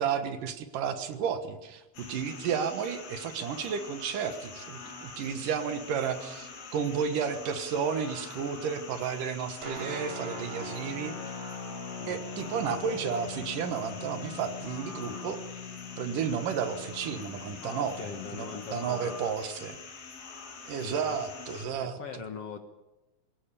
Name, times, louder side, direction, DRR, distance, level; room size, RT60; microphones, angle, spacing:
voice 1, 0.0-11.1 12.1-15.4 16.0-19.8 20.7-22.0, right 7 dB, 70° right, 9 dB, 2.9 m, -32 dB
sound 1, 1.9-21.7, left 5 dB, 85° left, 5.0 m, -45 dB
Guitar, 9.6-18.7, left 3 dB, 50° right, 4.8 m, -41 dB
voice 2, 17.6-19.2 20.8-21.2 21.8-22.6, left 6 dB, 55° left, 7 dB, 1.9 m, -41 dB
22.0 x 18.5 x 8.6 m, 0.99 s
omnidirectional pair, 4.0 m